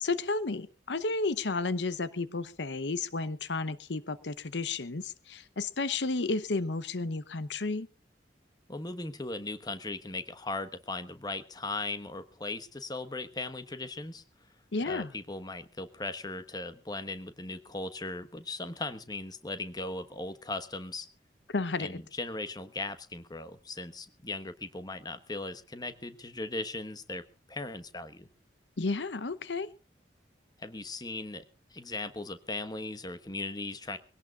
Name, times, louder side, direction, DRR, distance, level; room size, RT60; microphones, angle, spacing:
voice 1, 0.0-7.9 14.7-15.1 21.5-21.9 28.8-29.7, left 3 dB, 80° left, 16 dB, 0.9 m, -32 dB
voice 2, 8.7-14.2 14.9-21.1 21.8-27.2 27.5-28.3 30.6-31.4 31.7-34.0, left 2 dB, 25° left, 11 dB, 1.2 m, -38 dB
23.0 x 17.5 x 2.4 m, 0.33 s
head